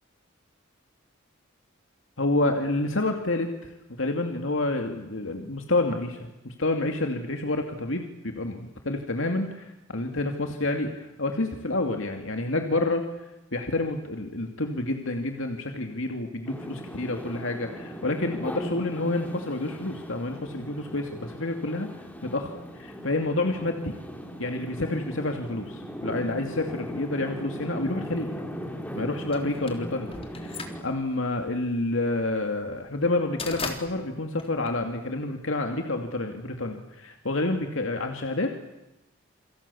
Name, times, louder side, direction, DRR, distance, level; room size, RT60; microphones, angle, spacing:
voice 1, 2.2-21.9 22.2-23.9 24.4-28.3 29.0-38.6, left 2 dB, 70° left, 4 dB, 2.7 m, -29 dB
sound 1, 16.4-30.8, equal, 10° left, 4.0 m, -38 dB
sound 2, 29.3-35.5, left 4 dB, 30° left, 3.5 m, -39 dB
28.5 x 26.5 x 7.2 m, 0.95 s
head